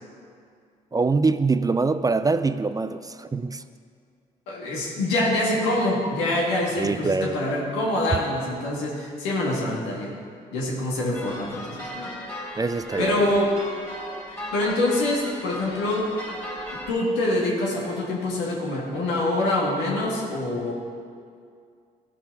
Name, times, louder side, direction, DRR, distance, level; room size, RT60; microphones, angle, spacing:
voice 1, 0.9-3.6 6.8-7.4 12.6-13.3, right 4 dB, 20° right, 12 dB, 0.4 m, -24 dB
voice 2, 4.5-10.1 10.5-12.1 13.0-13.5 14.3-16.3 16.7-20.7, left 1 dB, 90° left, -3 dB, 1.9 m, -25 dB
sound 1, 11.1-16.9, left 1 dB, 15° left, 2.7 m, -37 dB
13.5 x 5.5 x 4.7 m, 2.2 s
supercardioid pair, 60°, 18 cm